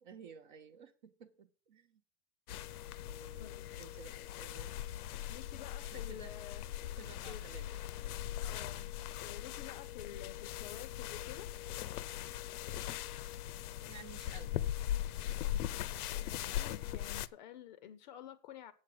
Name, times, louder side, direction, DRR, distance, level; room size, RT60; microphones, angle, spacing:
voice 1, 0.0-2.0 3.1-4.8 5.8-6.3 6.9-7.9 8.5-8.6 13.9-14.6, right 6 dB, 30° right, 0.5 m, -54 dB
sound 1, 2.5-17.3, left 12 dB, 65° left, 0.7 m, -40 dB
voice 2, 3.4-3.7 5.3-6.7 7.3-7.4 8.4-11.5 15.9-18.7, left 10 dB, 30° left, 0.6 m, -51 dB
8.6 x 6.3 x 7.6 m
supercardioid pair, 165°, 48 cm